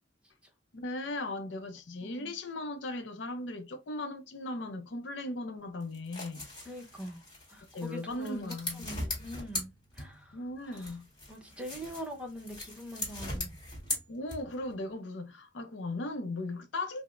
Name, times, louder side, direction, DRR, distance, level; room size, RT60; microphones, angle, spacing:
voice 1, 0.7-6.5 7.7-9.0 10.3-11.1 14.1-17.0, left 2 dB, 70° left, 0.6 m, -37 dB
voice 2, 2.0-2.3 6.6-7.2 7.5-10.4 10.7-11.0 11.3-13.5, equal, 5° right, 0.8 m, -43 dB
sound 1, 5.8-10.4 10.7-14.7, left 1 dB, 25° left, 1.9 m, -40 dB
4.9 x 2.0 x 2.4 m
head